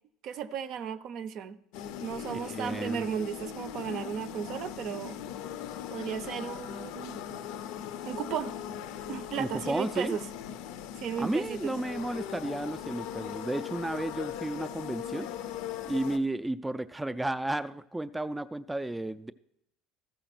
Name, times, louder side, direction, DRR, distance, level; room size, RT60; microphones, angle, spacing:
voice 1, 0.2-1.6 2.0-5.2 5.9-7.4 8.1-8.6 9.1-10.2 11.0-11.8, right 8 dB, 60° right, 13 dB, 0.5 m, -35 dB
sound 1, 1.7-16.2, left 10 dB, 75° left, 0.5 m, -39 dB
voice 2, 2.3-3.0 9.4-10.2 11.2-15.3 15.8-19.3, right 1 dB, 10° right, 11 dB, 0.3 m, -33 dB
13.5 x 5.0 x 6.0 m, 0.79 s
supercardioid pair, 110°, 0 cm